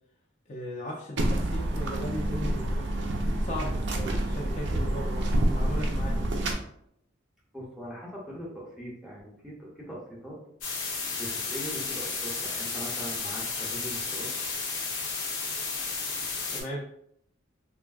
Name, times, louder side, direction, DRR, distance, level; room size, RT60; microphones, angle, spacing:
voice 1, 0.5-2.9 3.4-6.3 16.5-16.8, left 1 dB, 35° left, -2 dB, 0.4 m, -37 dB
sound 1, 1.2-6.6, right 1 dB, 60° right, 0.4 m, -28 dB
voice 2, 7.5-10.4 11.2-14.3, equal, ahead, -5 dB, 0.7 m, -41 dB
sound 2, 10.6-16.6, left 4 dB, 75° left, 0.7 m, -33 dB
3.2 x 2.4 x 2.3 m, 0.71 s
head